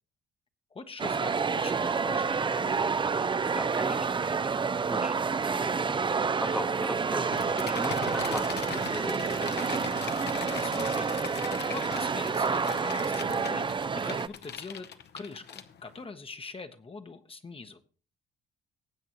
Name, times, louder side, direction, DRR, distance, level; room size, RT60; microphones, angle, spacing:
voice 1, 0.7-2.9 10.4-17.8, left 3 dB, 30° left, 7 dB, 1.0 m, -43 dB
sound 1, 1.0-14.3, right 5 dB, 25° right, 0.5 m, -29 dB
voice 2, 3.4-6.0 6.4-9.4, equal, 5° right, 7 dB, 1.0 m, -38 dB
sound 2, 7.3-16.0, left 8 dB, 60° left, 1.0 m, -40 dB
19.5 x 8.0 x 3.0 m, 0.39 s
cardioid pair, 90°, 20 cm